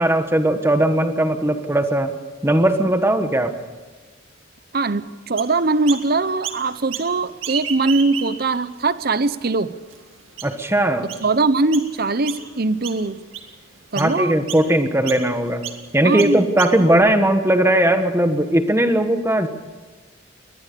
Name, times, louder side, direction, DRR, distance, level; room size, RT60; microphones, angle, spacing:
voice 1, 0.0-2.1 2.4-3.6 10.4-11.1 14.0-15.7 15.9-19.5, right 1 dB, 10° right, 8 dB, 1.4 m, -18 dB
voice 2, 4.7-9.7 11.2-13.2 13.9-14.3 16.0-16.5, right 3 dB, 50° right, 14 dB, 0.8 m, -21 dB
Chirp tweet, 5.4-6.0 6.4-7.1 7.4-8.6 9.1-9.2 9.9-10.0 10.4-10.7 11.1-11.3 11.7-11.9 12.2-12.6 12.8-13.5 13.9-14.1 14.5-14.6 15.1-15.2 15.6-15.8 16.2-17.0, right 9 dB, 80° right, 2.2 m, -31 dB
23.0 x 19.5 x 6.9 m, 1.3 s
head